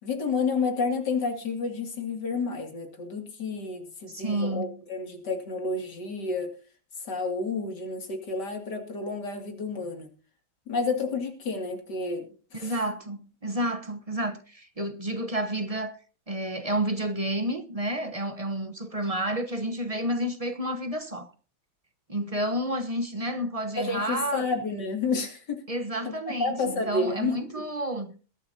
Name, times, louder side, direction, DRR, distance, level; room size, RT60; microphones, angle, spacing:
voice 1, 0.0-6.6 7.0-10.1 10.7-12.3 12.5-12.8 23.7-25.6 26.0-26.1 26.4-27.6, left 4 dB, 55° left, 3.1 m, -30 dB
voice 2, 4.1-4.8 12.6-16.0 16.3-21.3 22.1-24.5 25.7-28.2, right 1 dB, 30° right, 0.7 m, -30 dB
21.5 x 11.5 x 2.8 m
omnidirectional pair, 2.2 m